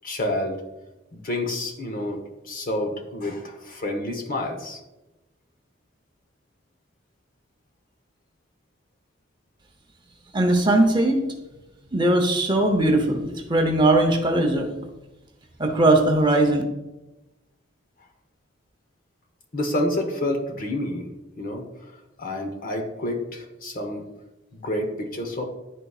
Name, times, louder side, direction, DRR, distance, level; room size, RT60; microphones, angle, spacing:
voice 1, 0.0-0.6 1.1-2.2 2.4-4.8 19.5-21.1 21.4-21.6 22.2-24.0 24.5-25.5, left 1 dB, 45° left, 3 dB, 1.0 m, -28 dB
voice 2, 10.3-11.2 11.9-14.7 15.6-16.6, right 1 dB, 25° right, 3 dB, 0.8 m, -19 dB
11.0 x 3.9 x 2.4 m, 1.0 s
head